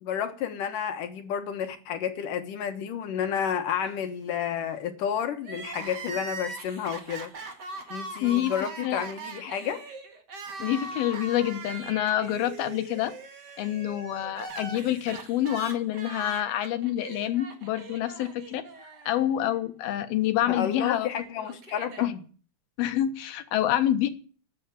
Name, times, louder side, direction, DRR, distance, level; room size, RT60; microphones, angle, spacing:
voice 1, 0.0-7.3 7.9-9.8 20.5-22.2, left 8 dB, 65° left, 2.7 m, -31 dB
Crying sobbing, 5.4-19.6 19.9-20.0 20.9-22.1, right 3 dB, 40° right, 1.7 m, -41 dB
voice 2, 8.2-8.5 8.8-9.0 10.6-13.2 13.6-21.1 22.0-22.1 22.8-24.1, left 12 dB, 85° left, 3.1 m, -27 dB
13.0 x 8.6 x 8.6 m
omnidirectional pair, 4.3 m